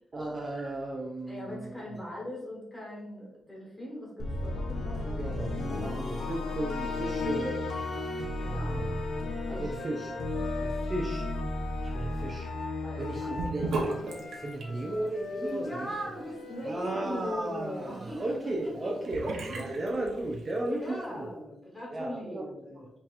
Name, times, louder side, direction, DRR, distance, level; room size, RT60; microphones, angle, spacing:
voice 1, 0.1-2.0 5.2-7.6 8.4-9.0 9.5-10.1 10.6-11.3 11.8-13.7 14.3-15.9 16.6-21.3 21.9-22.5, right 1 dB, 25° right, -1 dB, 0.4 m, -35 dB
voice 2, 1.3-5.5 8.4-8.9 9.5-9.8 10.4-10.9 12.8-13.5 15.4-19.1 20.7-22.9, equal, 10° left, -4 dB, 1.3 m, -40 dB
sound 1, 4.2-14.4, left 2 dB, 65° left, 0.8 m, -34 dB
Wind instrument woodwind instrument, 8.6-17.2, left 3 dB, 50° left, 0.4 m, -42 dB
Sink (filling or washing) / Bathtub (filling or washing), 13.4-20.7, right 2 dB, 75° right, 0.8 m, -39 dB
5.2 x 2.8 x 2.4 m, 0.89 s
wide cardioid pair, 175°, 0 cm